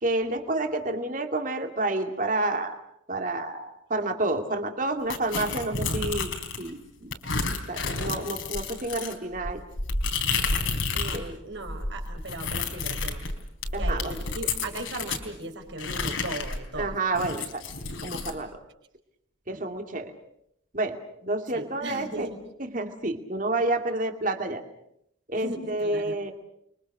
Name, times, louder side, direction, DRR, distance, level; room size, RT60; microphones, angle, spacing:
voice 1, 0.0-2.8 3.1-6.3 6.6-7.1 7.7-9.6 11.1-11.2 13.7-14.0 16.8-17.6 18.0-18.6 19.5-20.1 20.7-21.0 21.2-22.3 22.7-24.6 25.3-26.3, right 2 dB, 40° right, 5 dB, 2.4 m, -29 dB
sound 1, 5.1-6.7 7.1-11.3 11.5-15.2 15.8-18.4, left 3 dB, 70° left, 4.0 m, -30 dB
voice 2, 10.7-13.3 13.8-17.0 19.5-19.7 21.5-22.4 25.3-26.2, right 1 dB, 60° right, 5 dB, 4.8 m, -38 dB
29.5 x 23.5 x 6.6 m, 0.75 s
head